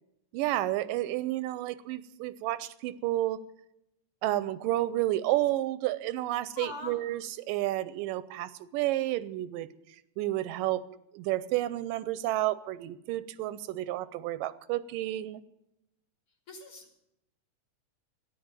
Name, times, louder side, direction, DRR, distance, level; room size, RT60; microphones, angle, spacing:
voice 1, 0.3-3.4 4.2-10.8 11.1-15.4, right 15 dB, 90° right, 16 dB, 2.3 m, -31 dB
voice 2, 6.6-7.0 16.5-17.0, left 3 dB, 45° left, 3 dB, 2.8 m, -42 dB
13.5 x 11.0 x 8.9 m, 0.82 s
omnidirectional pair, 3.8 m